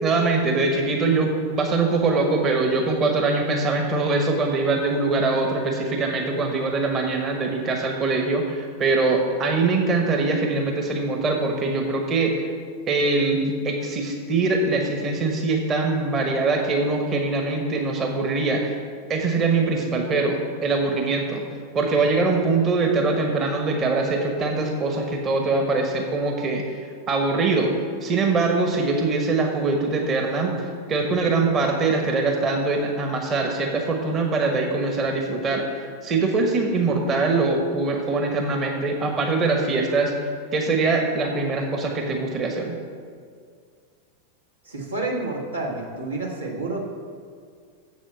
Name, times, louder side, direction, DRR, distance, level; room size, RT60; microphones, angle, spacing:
voice 1, 0.0-12.4 12.9-18.8 19.1-21.4 21.7-27.7 28.0-42.8, right 3 dB, 30° right, 3 dB, 1.1 m, -23 dB
voice 2, 44.6-46.9, right 2 dB, 75° right, -2 dB, 1.7 m, -29 dB
7.5 x 7.4 x 7.1 m, 2.1 s
figure-of-eight pair, 90°, 0 cm